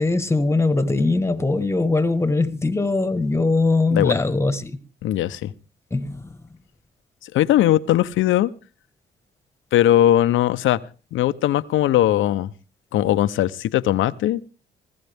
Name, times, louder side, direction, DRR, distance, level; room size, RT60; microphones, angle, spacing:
voice 1, 0.0-4.8 5.9-6.3, left 3 dB, 15° left, 1.4 m, -21 dB
voice 2, 5.0-5.5 7.2-8.5 9.7-10.8 11.1-12.5 12.9-14.4, left 13 dB, 80° left, 0.8 m, -19 dB
19.0 x 15.5 x 3.5 m
cardioid pair, 90°, 20 cm